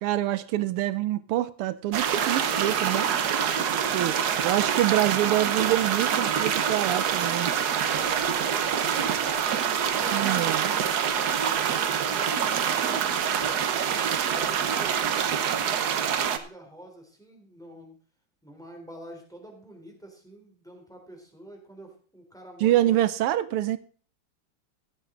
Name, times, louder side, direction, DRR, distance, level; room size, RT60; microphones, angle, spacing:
voice 1, 0.0-3.1 3.9-4.1 4.4-7.5 10.1-10.7 22.6-23.8, right 14 dB, 85° right, 1.6 m, -26 dB
sound 1, 1.9-16.4, right 8 dB, 55° right, 1.2 m, -26 dB
voice 2, 7.9-13.8 14.3-18.0 18.4-23.0, right 1 dB, ahead, 3.4 m, -46 dB
14.0 x 10.5 x 3.8 m
omnidirectional pair, 2.4 m